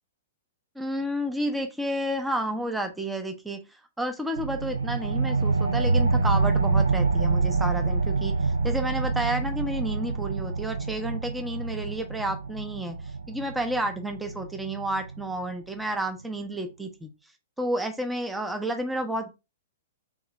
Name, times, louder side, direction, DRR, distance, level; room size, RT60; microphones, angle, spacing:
voice 1, 0.8-3.6 4.0-13.0 13.3-17.1 17.6-19.3, right 1 dB, 5° right, 6 dB, 0.6 m, -31 dB
sound 1, 4.4-15.4, right 4 dB, 75° right, 0.6 m, -26 dB
3.5 x 2.9 x 4.2 m, 0.26 s
figure-of-eight pair, 105°, 0 cm